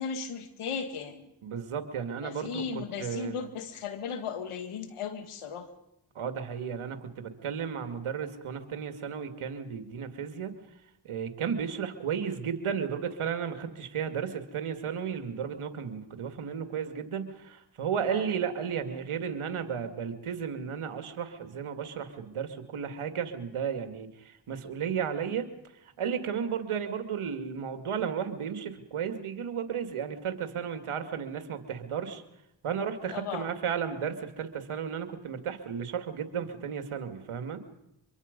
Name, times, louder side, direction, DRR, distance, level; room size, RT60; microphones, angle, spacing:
voice 1, 0.0-1.3 2.2-5.7 18.1-18.3 33.1-33.5, left 6 dB, 85° left, 8 dB, 2.2 m, -36 dB
voice 2, 1.4-2.6 3.0-3.4 6.1-10.5 11.0-25.5 25.8-32.2 32.6-37.6, right 7 dB, 80° right, 8 dB, 2.3 m, -34 dB
24.5 x 23.0 x 5.3 m, 0.83 s
supercardioid pair, 45°, 49 cm